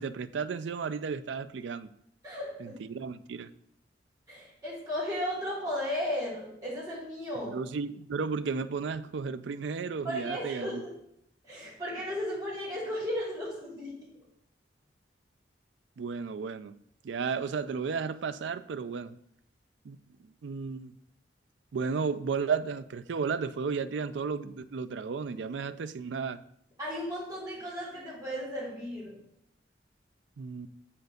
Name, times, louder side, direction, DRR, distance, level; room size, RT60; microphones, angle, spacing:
voice 1, 0.0-1.9 2.6-3.5 7.4-10.8 16.0-16.7 17.0-19.1 19.8-20.0 20.4-20.9 21.7-26.4 30.4-30.7, right 5 dB, 75° right, 0.4 m, -33 dB
voice 2, 2.2-2.8 4.3-7.5 10.0-10.9 11.4-14.0 26.8-29.2, equal, 20° right, 3.3 m, -35 dB
6.9 x 4.4 x 6.5 m
head